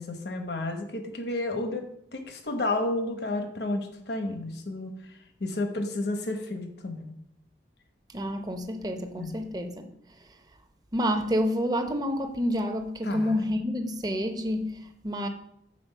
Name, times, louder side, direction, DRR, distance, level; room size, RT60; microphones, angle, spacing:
voice 1, 0.0-1.8 2.1-4.9 5.4-7.1 9.2-9.3 13.0-13.4, left 2 dB, 65° left, 5 dB, 1.0 m, -31 dB
voice 2, 8.1-9.9 10.9-15.3, equal, 20° right, 5 dB, 0.7 m, -29 dB
7.6 x 4.3 x 5.5 m, 0.74 s
head